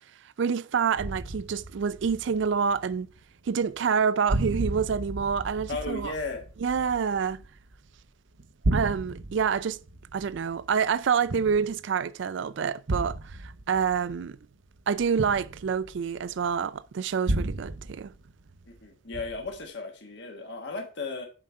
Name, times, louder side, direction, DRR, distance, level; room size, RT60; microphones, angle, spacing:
voice 1, 0.4-3.1 3.5-6.1 6.6-7.4 8.7-9.8 10.1-14.4 14.9-18.1, right 6 dB, 60° right, 0.4 m, -27 dB
sound 1, 1.0-3.2 3.5-4.0 4.3-8.0 8.4-12.0 12.9-16.4 17.3-18.8 19.1-19.6, right 2 dB, 85° right, 0.8 m, -34 dB
voice 2, 5.7-6.4 18.7-21.3, left 3 dB, 60° left, 1.3 m, -35 dB
7.7 x 5.0 x 4.3 m
head